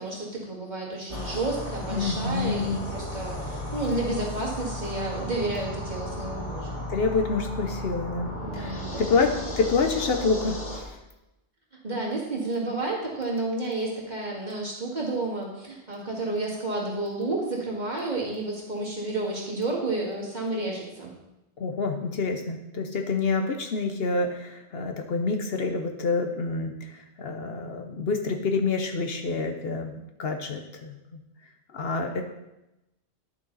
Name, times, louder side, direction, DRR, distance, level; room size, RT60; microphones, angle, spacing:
voice 1, 0.0-6.8 8.4-9.1 11.8-21.1, right 2 dB, 40° right, -3 dB, 2.1 m, -31 dB
sound 1, 1.1-10.8, left 1 dB, 80° left, 2.1 m, -35 dB
voice 2, 1.9-2.8 6.9-11.0 21.6-31.2 31.7-32.2, left 4 dB, 60° left, 5 dB, 1.0 m, -27 dB
10.0 x 6.5 x 4.0 m, 0.93 s
omnidirectional pair, 1.2 m